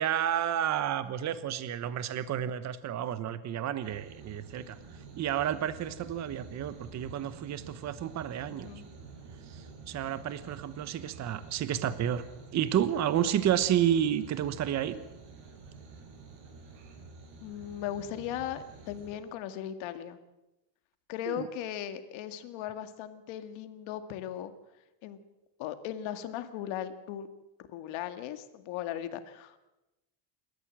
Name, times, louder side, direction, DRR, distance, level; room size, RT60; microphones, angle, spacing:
voice 1, 0.0-4.8 5.2-8.7 9.5-12.2 12.5-15.0 21.3-21.5, right 10 dB, 35° right, 13 dB, 1.0 m, -30 dB
sound 1, 3.8-19.2, right 4 dB, 65° right, 6.9 m, -49 dB
voice 2, 17.4-20.2 21.1-24.5 25.0-25.2 25.6-27.3 27.7-29.6, left 10 dB, 75° left, 9 dB, 2.1 m, -37 dB
29.0 x 13.5 x 7.5 m, 0.97 s
cardioid pair, 160°, 46 cm